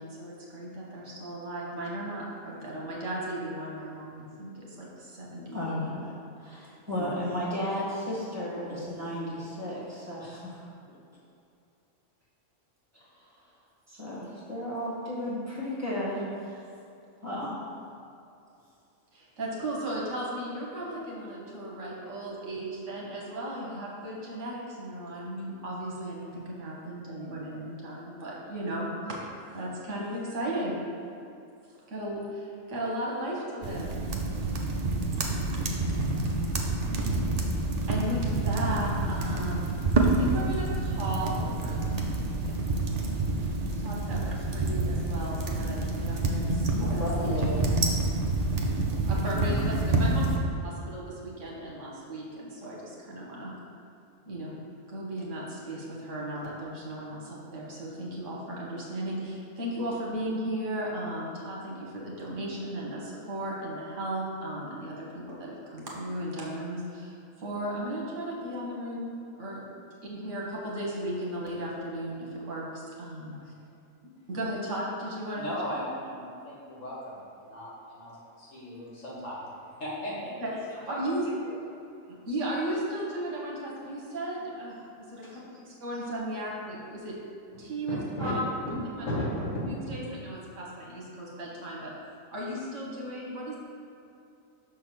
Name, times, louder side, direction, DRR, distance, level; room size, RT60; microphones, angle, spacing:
voice 1, 0.0-5.9 6.9-7.1 19.1-29.2 29.5-30.7 31.9-33.9 36.8-42.0 42.4-42.5 43.7-47.8 49.1-50.2 50.6-53.5 54.2-54.5 54.9-69.1 69.4-69.6 70.0-73.3 74.3-75.5 80.4-80.5 80.9-81.2 82.3-87.2 87.6-88.4 89.0-89.1 89.9-91.9 92.3-93.6, right 1 dB, 65° right, -4 dB, 1.6 m, -36 dB
voice 2, 5.5-6.1 6.4-10.6 12.9-13.3 13.9-16.7 17.2-17.6, equal, 10° right, -9 dB, 1.6 m, -34 dB
Wood Burning Stove, 33.6-50.4, right 2 dB, 40° right, 0.6 m, -28 dB
voice 3, 46.8-47.6 49.4-49.8 73.4-73.5 75.4-79.5 79.8-80.3 80.9-81.0 81.2-81.3 87.9-88.3 89.0-89.4 89.9-90.0, left 1 dB, 70° left, -7 dB, 2.1 m, -36 dB
6.1 x 3.7 x 6.1 m, 2.6 s
omnidirectional pair, 1.4 m